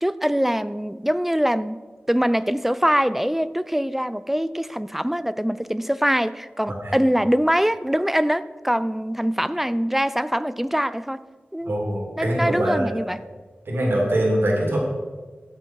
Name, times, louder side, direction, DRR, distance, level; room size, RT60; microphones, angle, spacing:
voice 1, 0.0-1.8 2.1-11.2 11.5-11.7 12.2-13.2, equal, 5° right, 15 dB, 0.4 m, -23 dB
voice 2, 11.6-12.9 13.7-14.8, right 1 dB, 80° right, -2 dB, 3.0 m, -23 dB
13.0 x 7.9 x 4.6 m, 1.4 s
wide cardioid pair, 80°, 4 cm